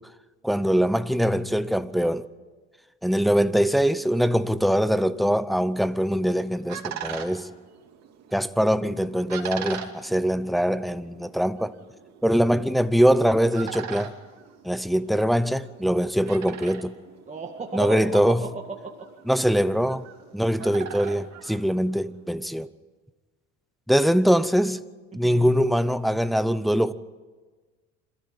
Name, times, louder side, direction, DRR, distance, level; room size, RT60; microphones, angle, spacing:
voice 1, 0.4-2.3 3.0-7.5 8.3-11.8 12.2-14.1 14.6-17.0 17.7-18.5 19.3-20.0 20.3-22.7 23.9-24.8 25.1-26.9, equal, ahead, 0.8 m, -22 dB
sound 1, 6.0-22.3, right 8 dB, 65° right, 2.7 m, -42 dB
voice 2, 17.3-19.1 25.1-25.6, right 4 dB, 25° right, 1.9 m, -34 dB
26.5 x 14.0 x 8.8 m
cardioid pair, 110°, 29 cm